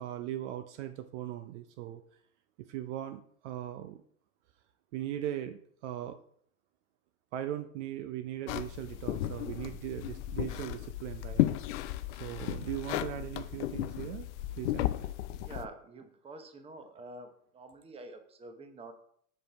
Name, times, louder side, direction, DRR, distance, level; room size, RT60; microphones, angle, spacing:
voice 1, 0.0-2.0 2.6-4.0 4.9-6.2 7.3-11.4 12.2-14.3 14.6-14.9, right 12 dB, 50° right, 9 dB, 0.6 m, -39 dB
sound 1, 8.5-15.7, left 14 dB, 50° left, 0.5 m, -34 dB
voice 2, 15.4-18.9, right 2 dB, 15° right, 6 dB, 0.8 m, -47 dB
5.3 x 5.3 x 4.5 m, 0.62 s
hypercardioid pair, 110°, 45 cm